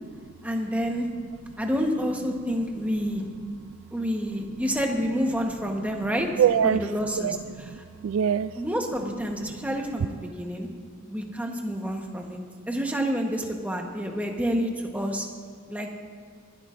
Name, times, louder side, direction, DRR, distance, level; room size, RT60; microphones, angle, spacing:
voice 1, 0.4-1.1 1.6-3.3 3.9-6.3 6.6-7.4 8.6-10.7 11.1-12.4 12.7-15.3 15.7-15.9, equal, 5° right, 1 dB, 1.1 m, -28 dB
voice 2, 6.4-6.9 7.2-8.5 9.4-9.5 10.0-10.1, right 8 dB, 75° right, 15 dB, 0.3 m, -25 dB
23.0 x 12.5 x 2.6 m, 2.1 s
head